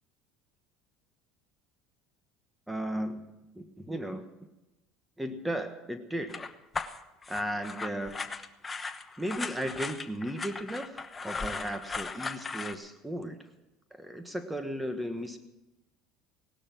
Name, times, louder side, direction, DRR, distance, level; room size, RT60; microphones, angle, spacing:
voice 1, 2.7-4.3 5.2-6.5 7.3-8.3 9.2-13.4 13.9-15.4, equal, 5° right, 8 dB, 1.4 m, -35 dB
sound 1, 6.3-12.7, left 4 dB, 20° left, 1.0 m, -37 dB
17.5 x 12.0 x 6.0 m, 0.99 s
supercardioid pair, 100°, 0 cm